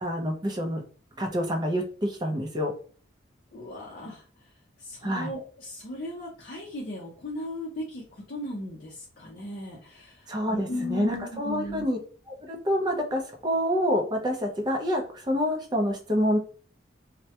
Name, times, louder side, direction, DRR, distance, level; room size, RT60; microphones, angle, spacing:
voice 1, 0.0-0.8 1.2-2.7 5.0-5.3 10.3-12.0 12.3-16.4, equal, 20° right, 2 dB, 0.4 m, -27 dB
voice 2, 3.5-4.5 4.8-11.9, left 1 dB, 50° left, -2 dB, 0.5 m, -37 dB
2.2 x 2.1 x 2.7 m, 0.41 s
head